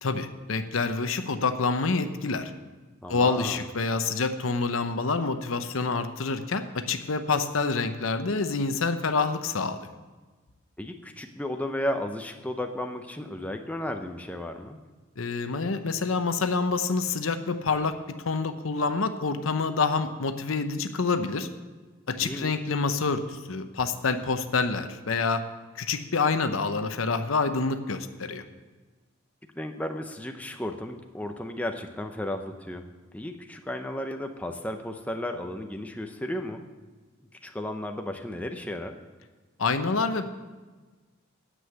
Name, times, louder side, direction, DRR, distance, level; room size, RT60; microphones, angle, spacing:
voice 1, 0.0-2.5 3.1-9.9 15.2-18.0 18.3-21.5 22.1-25.4 25.8-28.4 39.6-40.3, left 4 dB, 85° left, 9 dB, 0.8 m, -27 dB
voice 2, 3.0-3.7 10.8-14.8 22.2-22.6 29.5-32.8 33.1-36.7 37.4-39.0, left 1 dB, 5° left, 5 dB, 0.6 m, -34 dB
9.5 x 7.9 x 7.9 m, 1.3 s
head